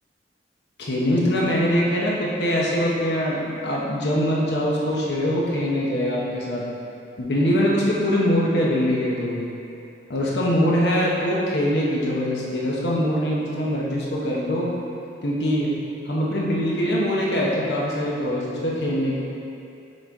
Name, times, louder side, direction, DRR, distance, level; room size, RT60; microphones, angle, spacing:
voice 1, 0.8-6.6 7.2-9.4 10.1-14.7 15.2-15.7 16.1-19.2, equal, 70° left, -5 dB, 0.9 m, -23 dB
6.4 x 5.0 x 3.6 m, 2.7 s
head